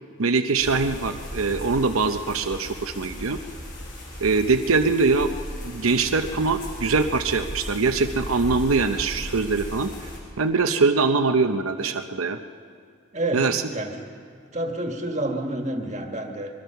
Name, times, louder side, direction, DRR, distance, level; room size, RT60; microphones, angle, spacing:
voice 1, 0.2-3.4 4.2-5.3 5.6-9.9 10.4-12.4 13.3-13.6, right 4 dB, 85° right, 7 dB, 0.8 m, -22 dB
sound 1, 0.6-10.2, equal, 40° left, 6.6 m, -37 dB
voice 2, 13.1-13.9 14.5-16.5, right 1 dB, 35° right, 3 dB, 1.8 m, -29 dB
23.5 x 22.0 x 5.9 m, 2.1 s
head